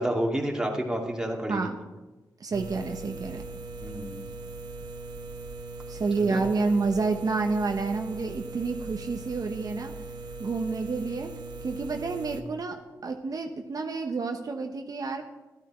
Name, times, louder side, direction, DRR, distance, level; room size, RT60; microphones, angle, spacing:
voice 1, 0.0-1.7 3.8-4.2 6.2-6.4, right 1 dB, 10° right, 0 dB, 2.5 m, -29 dB
voice 2, 1.5-1.8 2.4-3.4 5.9-9.9 10.4-11.3 11.6-15.2, right 4 dB, 55° right, 4 dB, 1.1 m, -29 dB
sound 1, 2.5-12.4, right 3 dB, 80° right, 1.0 m, -40 dB
13.0 x 12.0 x 4.4 m, 1.1 s
cardioid pair, 65°, 7 cm